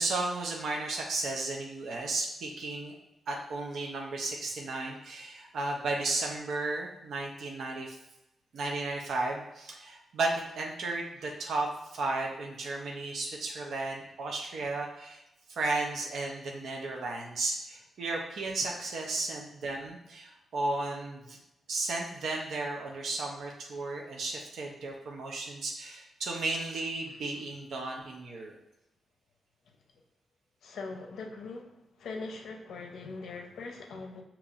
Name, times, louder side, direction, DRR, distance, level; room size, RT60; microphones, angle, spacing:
voice 1, 0.0-2.9 3.3-8.0 8.5-15.2 15.5-21.4 21.7-28.5, right 2 dB, 65° right, 0 dB, 0.6 m, -34 dB
voice 2, 30.6-31.7 32.0-34.2, left 3 dB, 75° left, 3 dB, 0.6 m, -41 dB
6.8 x 2.9 x 2.4 m, 0.90 s
wide cardioid pair, 170°, 0 cm